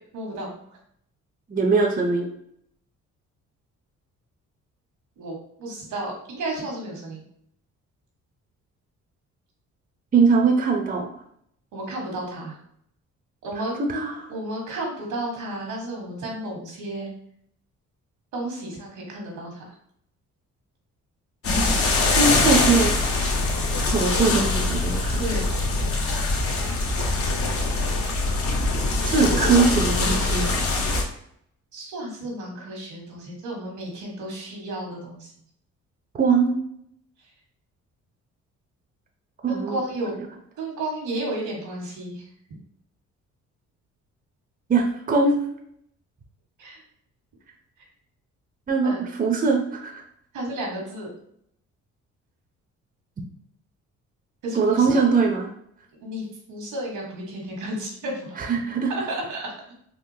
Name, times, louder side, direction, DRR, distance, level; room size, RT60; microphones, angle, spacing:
voice 1, 0.1-0.5 5.2-7.2 11.7-12.6 13.4-13.8 14.3-17.1 18.3-19.6 25.2-25.5 25.8-25.9 31.7-35.3 39.5-40.2 40.6-42.2 46.6-46.8 48.8-49.1 50.3-51.1 54.4-55.0 56.0-58.4 59.1-59.5, right 1 dB, 80° right, -1 dB, 1.3 m, -32 dB
voice 2, 1.5-2.3 10.1-11.1 13.9-14.1 22.2-23.3 23.9-25.2 29.0-30.6 36.2-36.6 39.4-39.8 44.7-45.3 48.7-50.0 54.6-55.5 58.5-58.9, right 4 dB, 30° right, 2 dB, 0.6 m, -21 dB
sound 1, 21.4-31.0, left 3 dB, 50° left, 0.8 m, -23 dB
3.7 x 2.5 x 2.7 m, 0.69 s
cardioid pair, 90°, 30 cm